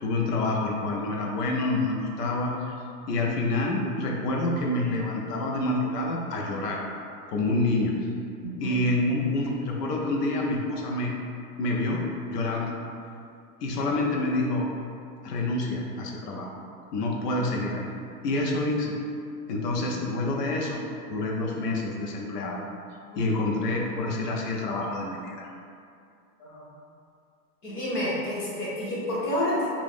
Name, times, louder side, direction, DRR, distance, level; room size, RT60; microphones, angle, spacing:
voice 1, 0.0-2.7 3.1-6.8 7.3-8.0 8.6-11.1 11.6-12.0 12.3-12.7 13.6-14.7 15.2-16.6 16.9-17.9 18.2-18.9 19.5-20.8 21.1-22.6 23.2-25.5, left 2 dB, 75° left, -1 dB, 0.7 m, -27 dB
voice 2, 8.4-8.8 23.1-23.5 26.4-26.7 27.6-29.7, left 1 dB, 30° left, -7 dB, 0.7 m, -30 dB
2.5 x 2.5 x 3.4 m, 2.5 s
supercardioid pair, 175°, 48 cm